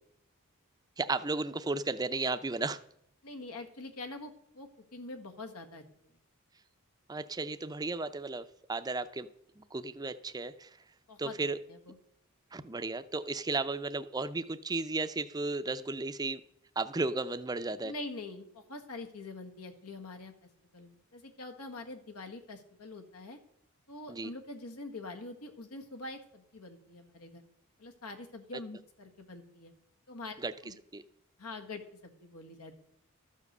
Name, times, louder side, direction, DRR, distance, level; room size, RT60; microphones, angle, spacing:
voice 1, 1.0-2.8 7.1-9.3 9.6-10.7 11.2-11.6 12.5-16.4 16.8-17.9 24.1-24.3 30.4-30.5 30.9-31.0, right 3 dB, 15° right, 11 dB, 0.5 m, -34 dB
voice 2, 3.2-6.1 11.1-11.4 11.7-11.9 17.8-20.3 20.7-23.4 23.9-27.4 27.8-29.7 30.1-30.3 30.6-30.7 31.4-32.8, left 2 dB, 85° left, 4 dB, 1.6 m, -45 dB
13.0 x 7.3 x 6.6 m, 0.74 s
head